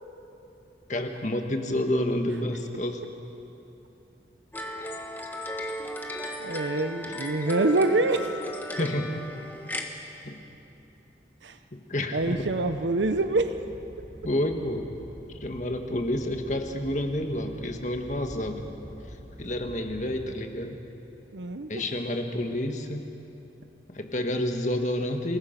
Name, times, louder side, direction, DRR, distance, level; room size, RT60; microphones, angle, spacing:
voice 1, 0.9-3.0 8.8-9.1 10.2-10.4 11.7-12.5 14.2-14.9 15.4-18.7 19.4-20.8 21.7-23.1 23.9-25.4, left 1 dB, 40° left, 4 dB, 1.7 m, -29 dB
sound 1, 4.5-9.8, equal, 10° left, 1.4 m, -35 dB
voice 2, 6.4-8.4 11.4-11.6 12.1-13.5 21.3-21.8, right 2 dB, 85° right, 9 dB, 0.9 m, -25 dB
Animal, 12.2-20.3, equal, 30° right, 2.5 m, -46 dB
27.5 x 19.5 x 6.0 m, 2.9 s
head